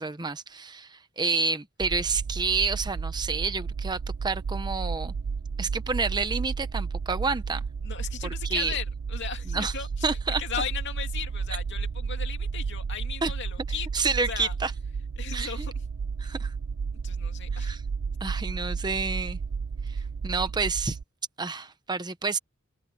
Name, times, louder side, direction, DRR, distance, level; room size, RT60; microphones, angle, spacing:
voice 1, 0.0-5.1 5.6-7.6 8.4-8.7 9.5-9.7 10.0-10.4 13.2-13.3 13.9-14.7 15.3-15.7 16.2-16.5 17.5-17.8 18.2-19.4 19.9-21.0 21.4-22.4, right 4 dB, 20° right, 0.9 m, -29 dB
sound 1, 1.8-21.0, right 5 dB, 75° right, 0.5 m, -32 dB
voice 2, 7.8-14.5 15.2-15.7 17.0-17.8, left 7 dB, 60° left, 2.5 m, -37 dB
open air
head